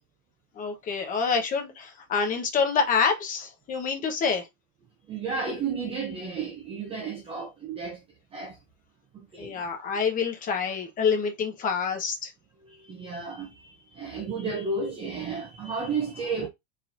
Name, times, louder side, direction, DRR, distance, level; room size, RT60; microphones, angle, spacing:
voice 1, 0.6-4.5 9.4-12.3, left 5 dB, 20° left, 1.0 m, -27 dB
voice 2, 5.1-8.0 8.3-8.6 9.1-9.6 12.7-16.5, right 4 dB, 15° right, 0.6 m, -32 dB
4.4 x 3.8 x 2.6 m
supercardioid pair, 165°, 40 cm